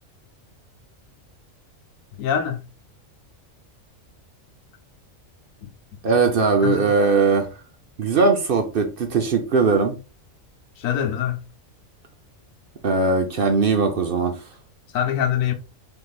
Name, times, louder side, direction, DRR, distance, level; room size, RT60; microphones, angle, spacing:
voice 1, 2.2-2.6 6.6-6.9 10.8-11.4 14.9-15.5, left 9 dB, 80° left, 1.1 m, -23 dB
voice 2, 6.0-7.5 8.0-10.0 12.8-14.4, right 4 dB, 55° right, 0.7 m, -19 dB
4.8 x 3.6 x 2.3 m
omnidirectional pair, 1.4 m